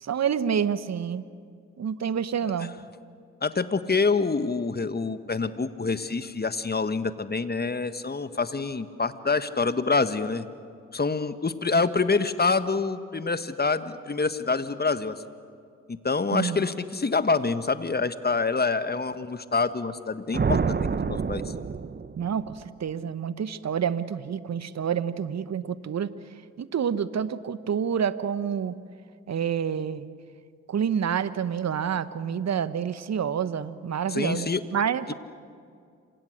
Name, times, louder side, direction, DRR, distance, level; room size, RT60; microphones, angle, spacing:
voice 1, 0.0-1.2 1.8-2.7 16.3-16.6 22.2-26.1 26.6-28.7 29.3-30.1 30.7-35.1, right 8 dB, 45° right, 14 dB, 1.2 m, -28 dB
voice 2, 3.4-10.4 10.9-15.2 15.9-20.7 21.0-21.4 34.1-34.6 35.1-35.2, left 4 dB, 25° left, 12 dB, 1.5 m, -26 dB
sound 1, 20.3-22.6, right 5 dB, 30° right, 1.0 m, -27 dB
27.5 x 25.5 x 6.6 m, 2.3 s
hypercardioid pair, 40°, 36 cm